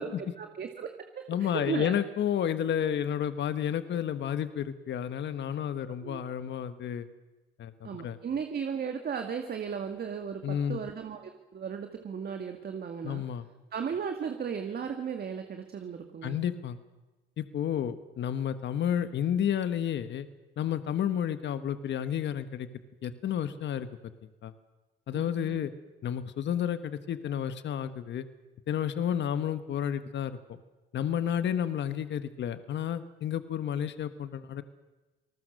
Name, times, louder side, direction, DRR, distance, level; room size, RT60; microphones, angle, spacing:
voice 1, 0.0-1.9 6.0-6.2 7.8-13.2 13.7-16.4 25.1-25.7, right 7 dB, 55° right, 6 dB, 2.0 m, -36 dB
voice 2, 1.3-7.1 7.6-8.2 10.4-10.8 13.0-13.4 16.2-16.8 17.4-20.3 20.6-22.7 23.0-23.9 24.4-24.5 25.1-25.7 26.0-28.3 28.7-30.6 30.9-34.6, left 9 dB, 65° left, 11 dB, 1.3 m, -31 dB
27.5 x 19.5 x 6.6 m, 1.2 s
cardioid pair, 90°, 20 cm